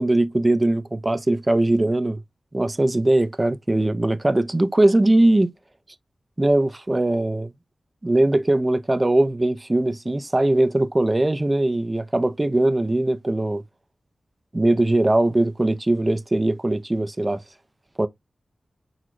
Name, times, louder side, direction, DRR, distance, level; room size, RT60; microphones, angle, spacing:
voice 1, 0.0-2.2 2.5-5.5 6.4-7.5 8.0-13.6 14.5-17.4 18.0-18.1, right 1 dB, 20° right, 0.3 m, -20 dB
6.1 x 2.1 x 2.9 m
wide cardioid pair, 105°, 0 cm